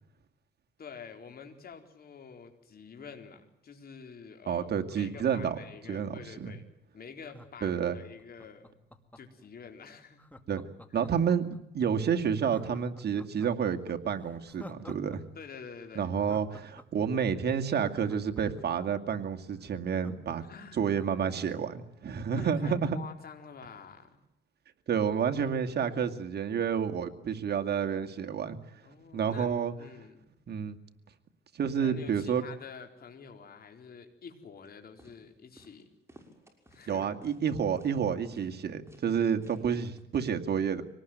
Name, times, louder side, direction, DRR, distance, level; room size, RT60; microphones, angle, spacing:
voice 1, 0.8-6.6 6.9-8.7 9.1-10.2 10.9-11.0 15.3-16.1 20.4-20.8 22.3-24.2 28.8-29.5 29.8-30.3 31.8-35.8 36.7-37.1, left 6 dB, 50° left, 5 dB, 4.3 m, -48 dB
voice 2, 4.5-5.6 5.9-6.5 7.6-8.0 10.5-10.6 10.9-15.2 16.0-20.4 20.7-23.0 24.9-28.6 29.1-29.7 30.5-30.8 31.5-32.4 36.9-40.8, right 7 dB, 55° right, 5 dB, 2.3 m, -29 dB
Laughter, 4.7-6.4 7.2-9.4 10.2-11.6 11.9-12.0 12.4-15.2 15.4-15.5 15.9-18.8 19.3-19.4 19.6-21.3 21.7-21.8, left 1 dB, 10° left, 2.3 m, -51 dB
sound 1, 34.6-34.7 35.0-35.2 35.6-35.8 36.1-36.9 37.2-37.5 37.8-38.0 38.3-38.6 38.9-39.1 39.4-39.7 40.0-40.1, right 1 dB, 15° right, 6.4 m, -56 dB
25.0 x 19.0 x 9.3 m, 0.82 s
cardioid pair, 90°, 20 cm